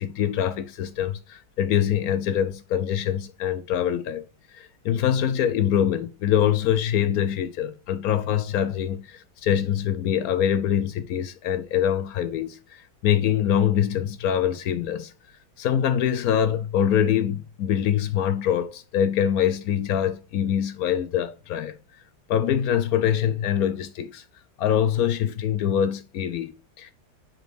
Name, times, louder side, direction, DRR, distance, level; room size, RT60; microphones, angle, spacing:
voice 1, 0.0-4.2 4.5-12.6 13.0-15.1 15.6-21.8 22.3-24.2 24.6-26.9, left 9 dB, 70° left, 1.0 m, -24 dB
5.2 x 4.3 x 4.6 m
omnidirectional pair, 1.8 m